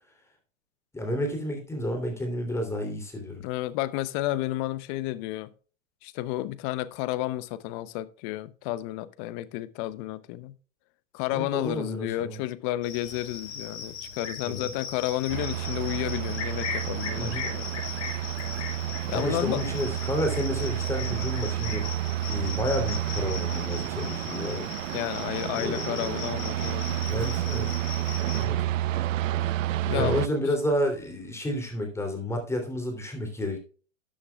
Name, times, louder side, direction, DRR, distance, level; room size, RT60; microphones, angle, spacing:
voice 1, 0.9-3.4 11.3-12.4 14.4-14.7 17.2-17.6 19.1-21.8 22.3-24.7 25.5-26.2 27.0-27.8 28.4-28.6 29.9-33.6, left 1 dB, 5° left, 3.0 m, -30 dB
voice 2, 3.4-5.5 6.0-10.5 11.1-17.6 19.1-19.7 24.9-27.0 28.3-28.7 29.9-30.4, left 15 dB, 35° left, 0.8 m, -31 dB
Cricket, 12.8-28.4, left 5 dB, 65° left, 6.0 m, -38 dB
sound 1, 15.3-30.3, right 13 dB, 80° right, 0.7 m, -30 dB
13.0 x 8.9 x 2.3 m
hypercardioid pair, 135°, 38 cm